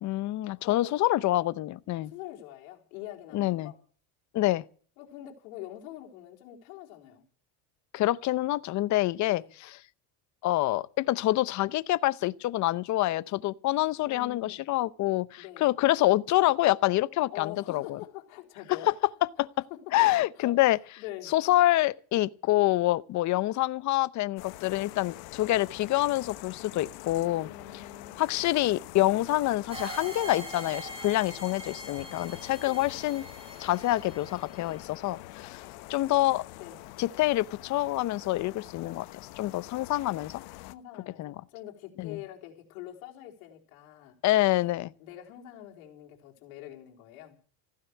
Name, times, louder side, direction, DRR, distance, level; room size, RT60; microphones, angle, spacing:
voice 1, 0.0-2.1 3.3-3.7 4.3-4.6 7.9-9.4 10.4-18.0 18.9-19.0 19.4-19.6 19.9-20.8 21.3-27.5 28.2-33.2 33.6-35.6 35.9-36.4 37.0-40.4 41.2-41.3 42.0-42.2 44.2-44.9, left 16 dB, 45° left, 0.8 m, -26 dB
voice 2, 0.6-0.9 1.3-1.4 2.0-3.8 5.0-7.2 9.3-9.5 14.1-14.6 15.4-15.7 17.3-18.9 19.4-19.8 20.4-20.6 21.0-21.3 27.4-28.3 29.1-29.3 32.6-32.8 35.6-36.3 36.6-36.9 40.7-44.2 45.0-47.4, left 13 dB, 90° left, 4.1 m, -45 dB
sound 1, 24.4-40.7, left 18 dB, 65° left, 1.1 m, -45 dB
sound 2, 29.7-34.8, right 2 dB, 15° right, 4.3 m, -43 dB
15.5 x 9.6 x 8.2 m
cardioid pair, 135°, 41 cm